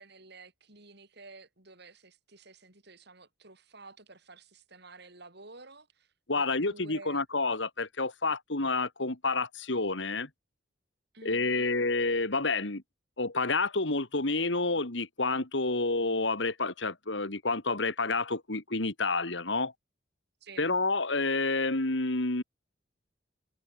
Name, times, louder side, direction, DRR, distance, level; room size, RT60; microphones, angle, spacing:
voice 1, 0.0-7.3 11.1-11.7 20.4-20.7, right 3 dB, 60° right, 5.7 m, -52 dB
voice 2, 6.3-10.3 11.2-12.8 13.2-19.7 20.6-22.4, left 3 dB, 70° left, 2.4 m, -29 dB
head